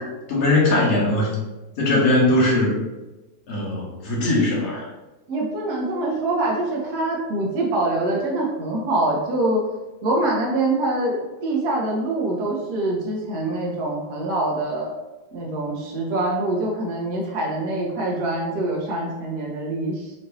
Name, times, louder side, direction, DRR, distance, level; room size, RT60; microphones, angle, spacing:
voice 1, 0.0-1.3 1.8-2.8 3.5-4.9, left 2 dB, 45° left, -4 dB, 1.3 m, -20 dB
voice 2, 5.3-9.6 10.0-14.9 15.3-20.1, right 2 dB, 45° right, -2 dB, 1.0 m, -24 dB
4.3 x 2.8 x 2.9 m, 1.1 s
figure-of-eight pair, 90°, 0 cm